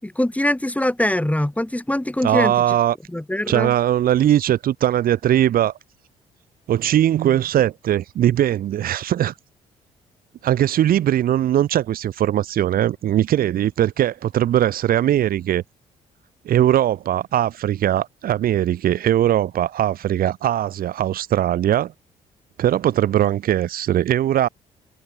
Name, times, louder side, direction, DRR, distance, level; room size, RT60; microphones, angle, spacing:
voice 1, 0.0-2.8 3.1-3.7, left 1 dB, 10° left, 7.1 m, -23 dB
voice 2, 2.2-3.0 3.5-5.7 6.7-9.3 10.4-15.6 16.4-21.9 22.6-24.5, right 11 dB, 65° right, 4.3 m, -20 dB
hypercardioid pair, 50°, 16 cm